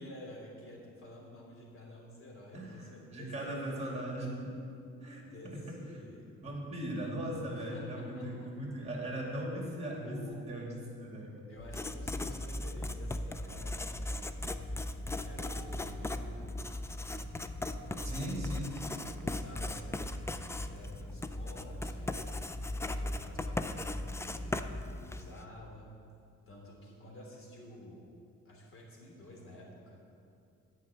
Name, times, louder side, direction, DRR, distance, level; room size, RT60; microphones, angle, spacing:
voice 1, 0.0-4.0 5.2-6.3 7.5-8.5 10.0-10.4 11.5-14.2 15.2-16.5 17.8-18.3 18.8-22.3 22.6-25.9 26.5-28.0 28.4-30.0, left 1 dB, 45° left, -2 dB, 3.0 m, -51 dB
voice 2, 2.5-4.5 5.0-5.8 6.4-11.3 18.0-18.8, right 1 dB, 20° right, -2 dB, 2.7 m, -39 dB
Writing, 11.6-25.4, left 1 dB, 10° left, 0.4 m, -38 dB
9.5 x 5.6 x 8.2 m, 2.5 s
cardioid pair, 90°, 30 cm